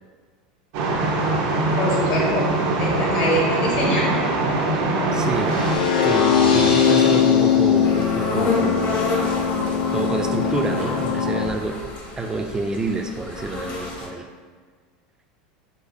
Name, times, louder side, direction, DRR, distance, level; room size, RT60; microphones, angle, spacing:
ambience hydroelectric power station Donau Greifenstein, 0.7-5.8, right 2 dB, 65° right, 0.6 m, -22 dB
voice 1, 1.8-4.2, left 1 dB, 65° left, -3 dB, 1.1 m, -24 dB
voice 2, 4.7-5.6 6.0-9.0 9.9-14.3, right 3 dB, 15° right, 5 dB, 0.3 m, -28 dB
sound 1, 5.3-14.1, left 3 dB, 45° left, 0.8 m, -31 dB
sound 2, 5.5-11.5, left 7 dB, 85° left, 0.5 m, -20 dB
4.0 x 2.7 x 2.6 m, 1.5 s
supercardioid pair, 110°, 4 cm